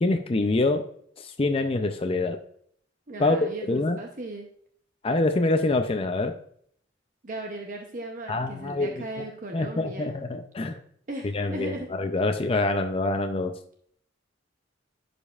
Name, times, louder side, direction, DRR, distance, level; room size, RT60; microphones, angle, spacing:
voice 1, 0.0-0.9 1.2-2.4 3.2-4.0 5.0-6.4 8.3-9.0 9.5-10.8 11.3-13.6, left 2 dB, 30° left, 6 dB, 0.5 m, -25 dB
voice 2, 3.1-4.5 7.2-10.1 11.1-11.9, right 2 dB, 45° right, 2 dB, 0.7 m, -37 dB
11.0 x 5.1 x 2.4 m, 0.63 s
head